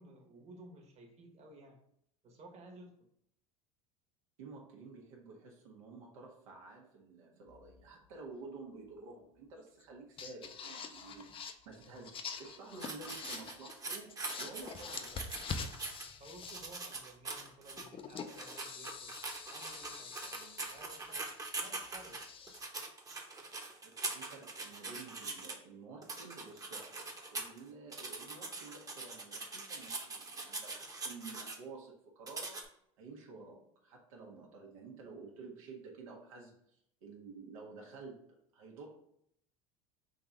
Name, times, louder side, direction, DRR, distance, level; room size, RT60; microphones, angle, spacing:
voice 1, 0.0-1.8 2.2-3.1 16.2-19.2 19.5-21.3 21.6-22.2, right 2 dB, 40° right, 1 dB, 1.2 m, -55 dB
voice 2, 4.4-15.2 23.8-32.7 33.0-38.9, right 4 dB, 85° right, -1 dB, 1.1 m, -51 dB
sound 1, 7.5-8.1 9.8-9.9 10.2-13.8 14.1-17.0 17.8-22.6, left 5 dB, 30° left, 0.5 m, -46 dB
sound 2, 12.8-16.0 16.4-17.8 18.3-25.5 26.0-27.6 27.9-31.6 32.3-32.6, right 3 dB, 20° right, 0.9 m, -42 dB
3.9 x 2.7 x 4.8 m, 0.72 s
supercardioid pair, 95°, 17 cm